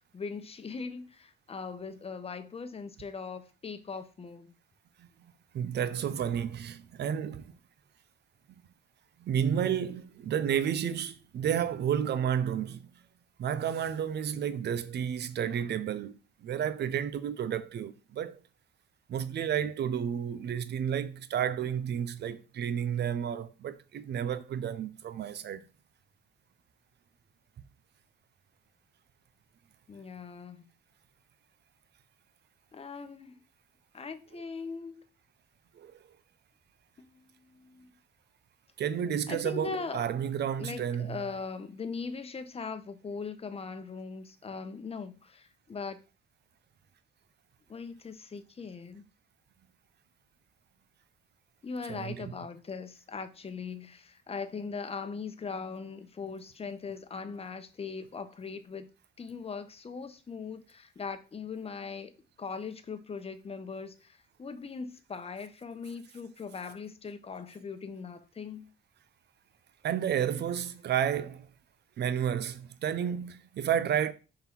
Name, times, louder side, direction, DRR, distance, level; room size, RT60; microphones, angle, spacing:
voice 1, 0.1-4.5 29.9-30.7 32.7-33.4 33.9-35.0 37.0-37.9 39.3-40.0 40.6-46.0 47.7-49.0 51.6-58.9 59.2-62.1 62.4-68.7 70.3-70.4, left 5 dB, 30° left, 0.9 m, -40 dB
voice 2, 5.5-7.4 9.2-12.9 13.4-18.4 19.1-25.6 35.7-36.0 38.8-41.2 51.9-52.3 69.8-71.5 72.0-74.1, right 9 dB, 60° right, 0.7 m, -31 dB
5.5 x 3.9 x 4.5 m
cardioid pair, 90°, 20 cm